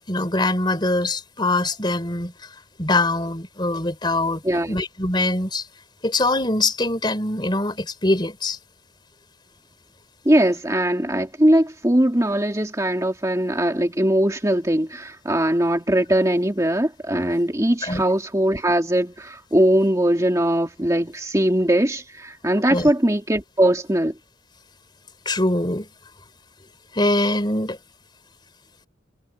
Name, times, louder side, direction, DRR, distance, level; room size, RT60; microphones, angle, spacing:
voice 1, 0.1-2.3 2.8-4.4 4.7-5.6 6.0-8.6 17.8-18.0 22.7-22.9 25.2-25.9 26.9-27.8, left 2 dB, 25° left, 3.3 m, -23 dB
voice 2, 4.4-4.8 10.3-24.1, right 1 dB, 15° right, 2.1 m, -20 dB
head